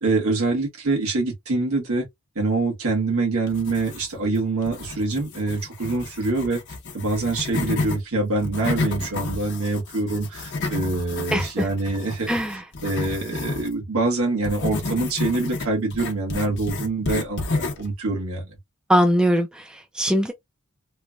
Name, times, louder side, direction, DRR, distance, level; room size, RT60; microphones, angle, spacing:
voice 1, 0.0-2.1 2.3-6.6 6.9-12.4 12.8-18.5, right 3 dB, 75° right, 1.3 m, -25 dB
sound 1, 3.5-4.3 4.6-8.0 8.4-13.7 14.4-17.9, left 3 dB, 55° left, 0.7 m, -31 dB
voice 2, 11.3-11.7 12.3-12.6 18.9-20.3, equal, 5° right, 0.3 m, -21 dB
3.0 x 2.1 x 2.3 m
head